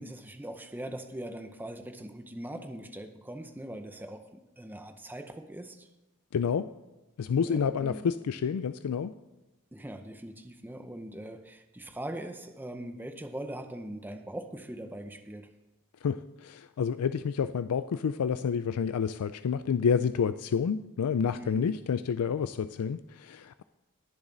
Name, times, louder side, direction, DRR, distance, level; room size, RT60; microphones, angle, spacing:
voice 1, 0.0-5.9 7.4-8.0 9.7-15.5 21.3-21.7, right 1 dB, 10° right, 6 dB, 0.7 m, -41 dB
voice 2, 6.3-6.7 7.2-9.1 16.0-23.6, left 6 dB, 85° left, 12 dB, 0.4 m, -29 dB
21.5 x 7.2 x 3.9 m, 1.0 s
head